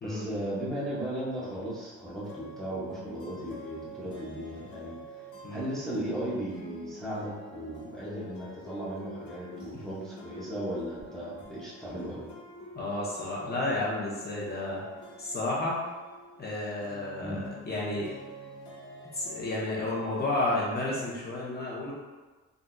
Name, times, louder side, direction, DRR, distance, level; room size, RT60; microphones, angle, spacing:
voice 1, 0.0-5.0 5.5-12.3 17.2-17.5, right 1 dB, ahead, -9 dB, 0.9 m, -36 dB
sound 1, 1.3-20.4, equal, 75° left, 1.3 m, -47 dB
voice 2, 12.7-14.8 15.2-15.8 16.4-18.1 19.1-21.9, left 2 dB, 35° left, -6 dB, 1.1 m, -31 dB
3.9 x 2.6 x 2.3 m, 1.3 s
cardioid pair, 90°, 30 cm